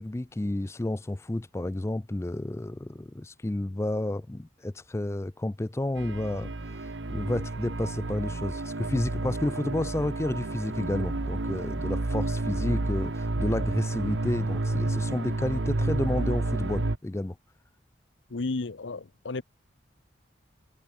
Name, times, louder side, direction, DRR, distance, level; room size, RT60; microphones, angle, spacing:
voice 1, 0.0-17.4, left 1 dB, 15° left, 0.4 m, -31 dB
sound 1, 6.0-17.0, right 2 dB, 75° right, 1.2 m, -30 dB
voice 2, 18.3-19.4, left 3 dB, 80° left, 0.8 m, -33 dB
head